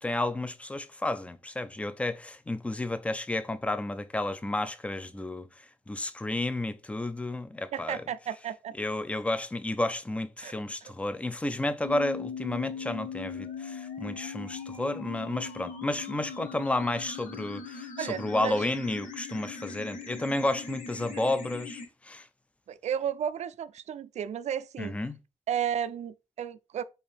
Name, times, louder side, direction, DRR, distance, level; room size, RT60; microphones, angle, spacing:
voice 1, 0.0-5.5 5.9-8.0 8.8-22.3 24.8-25.1, left 2 dB, 10° left, 0.4 m, -31 dB
voice 2, 7.7-8.7 10.4-10.5 10.8-10.9 18.0-18.6 22.7-25.0 25.5-26.8, right 9 dB, 60° right, 0.4 m, -33 dB
sound 1, 11.8-21.9, left 6 dB, 80° left, 1.1 m, -40 dB
4.4 x 2.6 x 3.4 m
cardioid pair, 80°, 13 cm